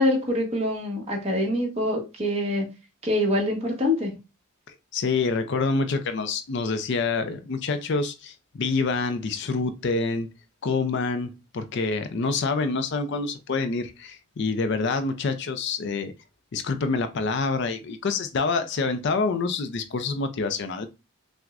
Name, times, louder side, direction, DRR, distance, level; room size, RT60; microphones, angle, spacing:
voice 1, 0.0-2.7 3.0-4.1, left 1 dB, 30° right, 1.0 m, -25 dB
voice 2, 4.7-10.3 10.6-16.1 16.5-20.9, left 4 dB, 55° left, 0.4 m, -27 dB
5.8 x 2.1 x 2.4 m
head